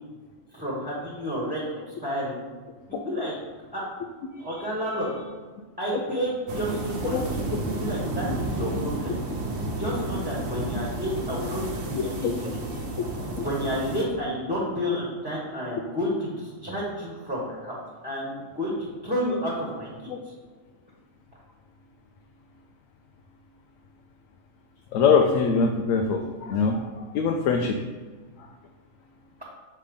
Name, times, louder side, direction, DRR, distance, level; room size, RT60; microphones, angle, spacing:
voice 1, 0.5-2.4 2.9-3.3 3.7-3.8 4.4-5.1 5.8-9.1 9.8-12.6 13.4-17.8 18.0-20.1, equal, 5° right, -5 dB, 1.1 m, -30 dB
voice 2, 4.5-5.2 7.1-7.2 8.2-8.3 11.9-12.3 13.4-13.5 24.9-27.8, left 5 dB, 85° left, 3 dB, 1.0 m, -24 dB
sound 1, 6.5-14.0, right 2 dB, 70° right, 1.3 m, -31 dB
6.7 x 3.3 x 5.1 m, 1.4 s
omnidirectional pair, 1.3 m